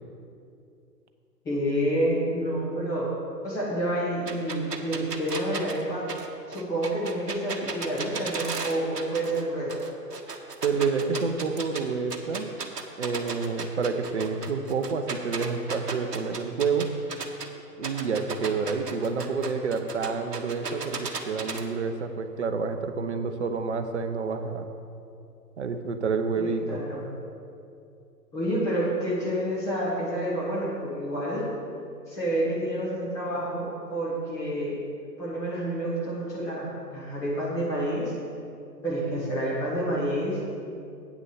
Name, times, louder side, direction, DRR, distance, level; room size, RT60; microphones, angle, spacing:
voice 1, 1.4-3.1 3.4-6.1 6.5-9.8 26.4-27.1 28.3-31.5 32.1-34.8 35.2-38.1 38.8-40.4, right 1 dB, 5° left, -8 dB, 0.9 m, -29 dB
sound 1, 4.3-9.4 9.7-11.8 12.1-17.5 17.8-21.6, right 4 dB, 70° right, 1.1 m, -35 dB
voice 2, 10.6-12.5 13.0-16.9 17.8-24.7 25.6-26.8, right 5 dB, 45° right, 7 dB, 0.8 m, -28 dB
8.5 x 6.3 x 6.8 m, 2.5 s
figure-of-eight pair, 130°, 49 cm